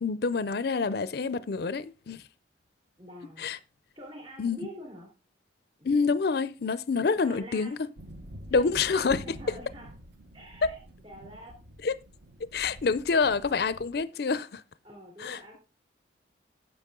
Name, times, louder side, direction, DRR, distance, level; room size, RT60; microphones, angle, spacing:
voice 1, 0.0-2.2 3.4-3.6 4.4-4.6 5.8-7.8 8.5-9.2 10.6-10.7 11.8-12.0 12.5-14.6 15.2-15.4, left 4 dB, 55° left, 0.4 m, -27 dB
voice 2, 3.0-3.5 3.9-5.1 5.8-6.0 7.1-7.8 8.5-9.9 10.3-11.6 14.8-15.6, equal, 30° right, 3.6 m, -46 dB
sound 1, 8.0-14.0, equal, 55° right, 0.9 m, -47 dB
10.0 x 7.0 x 3.7 m
head